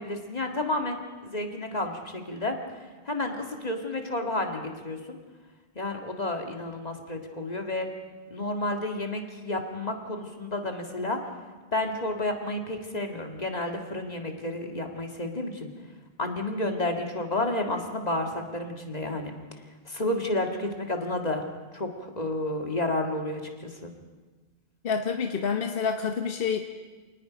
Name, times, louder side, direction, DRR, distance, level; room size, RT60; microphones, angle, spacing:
voice 1, 0.0-2.6 3.1-5.2 5.8-7.9 8.3-11.2 11.7-15.7 16.2-19.3 19.9-21.5 21.7-23.9, left 2 dB, 40° left, 3 dB, 2.1 m, -31 dB
voice 2, 24.8-26.6, left 6 dB, 60° left, 5 dB, 1.2 m, -28 dB
27.5 x 19.0 x 5.2 m, 1.3 s
omnidirectional pair, 1.1 m